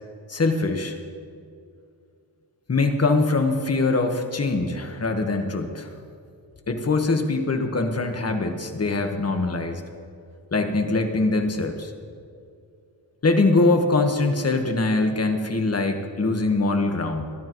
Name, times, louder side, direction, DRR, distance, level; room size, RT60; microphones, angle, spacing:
voice 1, 0.3-1.0 2.7-5.9 6.7-9.8 10.5-11.9 13.2-17.3, left 3 dB, 35° left, 5 dB, 1.5 m, -23 dB
23.5 x 11.5 x 3.1 m, 2.4 s
cardioid pair, 90°, 42 cm